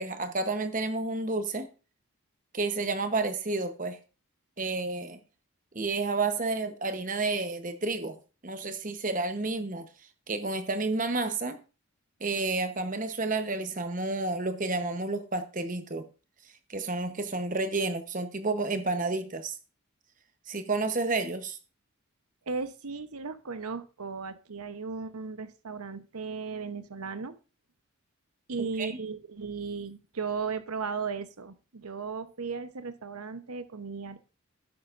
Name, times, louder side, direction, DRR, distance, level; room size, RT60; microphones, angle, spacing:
voice 1, 0.0-1.7 2.5-4.0 4.6-5.2 5.7-8.2 8.4-9.9 10.3-11.6 12.2-16.1 16.7-19.6 20.5-21.6 28.8-29.0, right 3 dB, 35° right, 1.0 m, -30 dB
voice 2, 22.5-27.3 28.5-34.2, right 5 dB, 85° right, 0.9 m, -36 dB
11.5 x 9.4 x 2.6 m
head